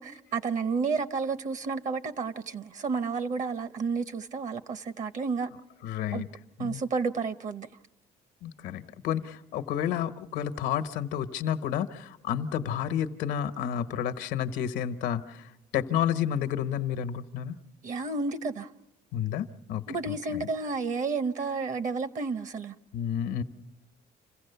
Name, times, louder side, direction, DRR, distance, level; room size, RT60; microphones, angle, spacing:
voice 1, 0.0-5.5 6.1-6.2 6.6-7.7 17.8-18.7 19.9-22.7, right 4 dB, 45° right, 0.8 m, -31 dB
voice 2, 5.8-6.3 6.6-6.8 8.4-17.6 19.1-20.5 22.9-23.4, left 9 dB, 85° left, 1.1 m, -31 dB
27.5 x 15.5 x 6.9 m
cardioid pair, 110°, 17 cm